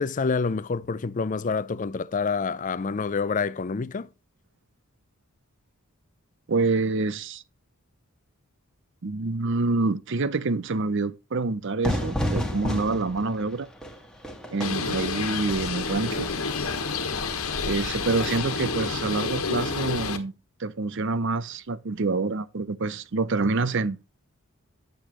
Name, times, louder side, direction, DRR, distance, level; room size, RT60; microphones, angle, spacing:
voice 1, 0.0-4.1, left 4 dB, 35° left, 0.4 m, -27 dB
voice 2, 6.5-7.4 9.0-13.7 14.5-16.3 17.7-20.3 20.6-24.0, right 3 dB, 55° right, 0.6 m, -27 dB
Fire / Fireworks, 11.8-17.4, equal, 5° left, 1.7 m, -32 dB
Bird, 14.6-20.2, left 4 dB, 75° left, 1.3 m, -29 dB
8.7 x 7.9 x 3.0 m
head